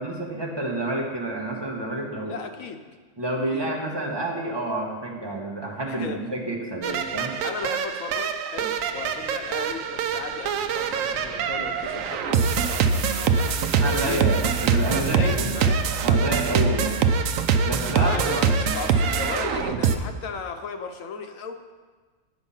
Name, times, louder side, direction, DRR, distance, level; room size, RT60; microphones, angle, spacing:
voice 1, 0.0-2.3 3.2-7.3 13.8-15.4 16.0-17.0 17.6-18.5, right 1 dB, 20° right, -1 dB, 1.2 m, -29 dB
voice 2, 2.2-2.8 3.5-3.7 5.9-6.2 6.8-7.1 7.4-14.3 15.1-15.8 17.9-21.5, left 5 dB, 85° left, 6 dB, 1.2 m, -35 dB
sound 1, 6.8-20.0, right 6 dB, 80° right, 1.0 m, -24 dB
sound 2, 8.6-19.3, right 1 dB, 55° right, 1.9 m, -40 dB
8.9 x 5.9 x 5.6 m, 1.4 s
omnidirectional pair, 1.4 m